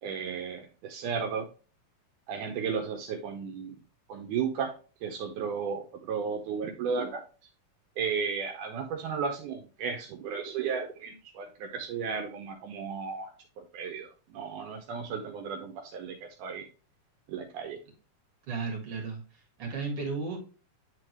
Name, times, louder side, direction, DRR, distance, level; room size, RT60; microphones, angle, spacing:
voice 1, 0.0-1.5 2.3-3.7 4.1-4.7 5.0-7.2 8.0-13.3 13.6-16.7 17.3-17.8, right 6 dB, 75° right, 4 dB, 2.1 m, -34 dB
voice 2, 18.5-20.4, right 4 dB, 45° right, 0 dB, 2.6 m, -34 dB
9.9 x 3.8 x 3.1 m, 0.36 s
omnidirectional pair, 4.0 m